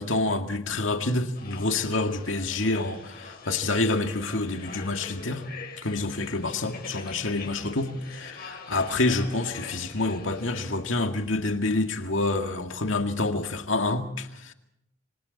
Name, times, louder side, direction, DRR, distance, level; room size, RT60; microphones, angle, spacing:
voice 1, 0.0-5.4 5.8-14.5, left 2 dB, 75° left, 2.2 m, -27 dB
sound 1, 1.3-10.7, left 4 dB, 50° left, 6.9 m, -44 dB
28.5 x 25.5 x 4.2 m
head